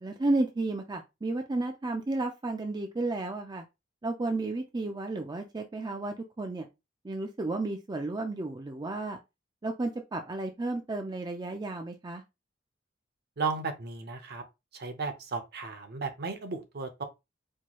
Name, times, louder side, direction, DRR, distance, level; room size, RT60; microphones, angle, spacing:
voice 1, 0.0-3.6 4.0-6.7 7.0-9.2 9.6-12.2, right 2 dB, 20° right, 0.4 m, -32 dB
voice 2, 13.4-14.4 14.7-17.0, right 4 dB, 55° right, 0.7 m, -34 dB
4.5 x 2.3 x 2.9 m
head